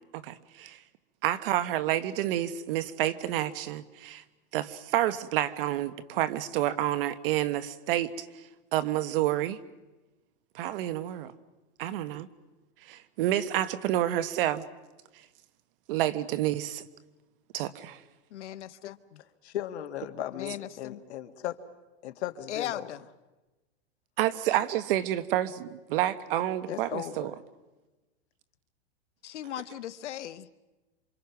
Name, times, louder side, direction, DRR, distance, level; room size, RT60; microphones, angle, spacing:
voice 1, 0.1-0.8 1.2-4.2 4.5-8.3 8.7-9.6 10.5-11.3 11.8-12.3 12.8-14.6 15.9-16.8 17.5-18.0 24.2-27.3, right 13 dB, 55° right, 1.3 m, -29 dB
voice 2, 18.3-19.2 20.3-21.0 22.5-23.0 29.2-30.5, left 11 dB, 90° left, 1.1 m, -38 dB
voice 3, 19.4-21.6 22.0-22.8 26.7-27.3, left 12 dB, 75° left, 1.9 m, -36 dB
28.0 x 26.0 x 5.9 m
supercardioid pair, 150°, 34 cm